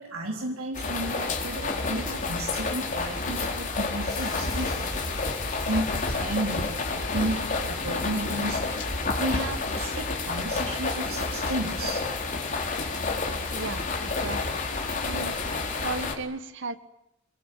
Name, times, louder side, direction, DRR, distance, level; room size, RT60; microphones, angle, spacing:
voice 1, 0.0-5.1 5.7-8.8 9.2-12.1, right 1 dB, 85° right, 0 dB, 4.2 m, -33 dB
sound 1, 0.7-16.2, left 3 dB, 40° left, 4.4 m, -29 dB
sound 2, 4.1-10.9, left 4 dB, 20° left, 5.0 m, -48 dB
voice 2, 13.5-14.6 15.0-15.4 15.8-16.8, right 3 dB, 60° right, 12 dB, 1.8 m, -35 dB
27.5 x 22.0 x 9.4 m, 0.84 s
head